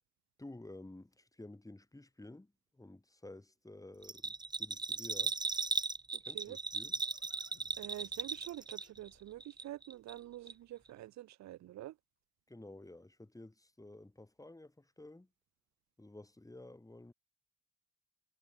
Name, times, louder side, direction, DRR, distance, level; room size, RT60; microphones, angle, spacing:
voice 1, 0.4-5.4 6.3-6.9 12.5-15.3 16.0-17.1, left 2 dB, 10° left, 4.6 m, -52 dB
Bell, 4.0-9.1 9.4-10.2 10.5-10.6, right 3 dB, 15° right, 0.6 m, -37 dB
voice 2, 6.1-6.6 7.8-11.9, right 14 dB, 65° right, 0.7 m, -47 dB
Livestock farm animals working animals, 6.2-11.3, left 6 dB, 45° left, 7.1 m, -70 dB
cardioid pair, 90°, 30 cm